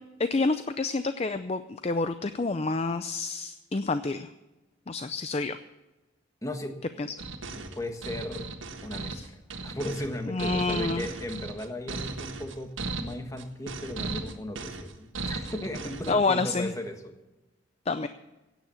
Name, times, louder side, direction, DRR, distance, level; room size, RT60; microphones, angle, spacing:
voice 1, 0.2-4.3 4.9-5.6 7.0-7.1 9.1-9.2 10.3-11.1 16.1-16.7 17.9-18.1, left 3 dB, 35° left, 11 dB, 0.5 m, -28 dB
voice 2, 6.4-6.7 7.5-8.5 8.8-17.1, left 1 dB, 15° left, 5 dB, 1.5 m, -36 dB
sound 1, 7.2-16.1, right 3 dB, 90° right, 1.6 m, -36 dB
16.5 x 9.2 x 7.1 m, 1.0 s
head